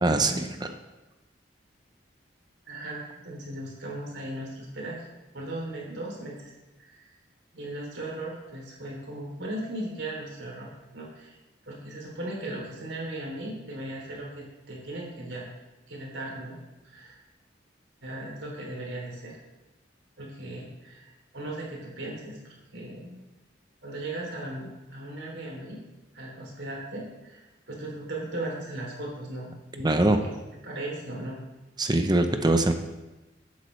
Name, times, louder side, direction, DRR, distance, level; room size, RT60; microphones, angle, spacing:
voice 1, 0.0-0.7 29.8-30.2 31.8-32.7, right 2 dB, 25° right, 7 dB, 0.8 m, -23 dB
voice 2, 2.6-5.1 5.3-6.5 6.8-7.1 7.5-11.4 11.6-15.4 15.9-16.6 16.8-17.2 18.0-19.4 20.2-23.2 23.8-25.8 26.1-30.3 30.6-31.4, right 1 dB, 80° right, -3 dB, 3.2 m, -37 dB
15.0 x 8.3 x 3.3 m, 1.1 s
head